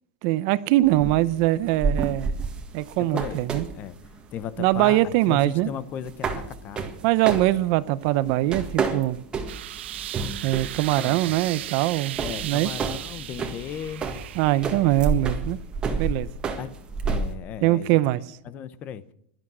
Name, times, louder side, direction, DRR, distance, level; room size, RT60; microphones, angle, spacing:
voice 1, 0.2-2.3 2.7-3.6 4.6-5.7 7.0-9.2 10.4-12.2 12.4-12.7 14.4-15.6 16.0-16.3 17.6-18.2, right 16 dB, 40° right, 0.7 m, -22 dB
sound 1, 0.8-17.4, right 4 dB, 15° right, 1.6 m, -30 dB
voice 2, 3.1-3.5 3.7-4.0 4.3-6.9 11.0-11.7 12.2-14.1 16.6-16.7 17.1-18.0 18.4-19.0, left 9 dB, 25° left, 0.8 m, -36 dB
sound 2, 9.5-15.1, right 13 dB, 75° right, 0.9 m, -36 dB
16.5 x 12.5 x 6.2 m
supercardioid pair, 165°, 6 cm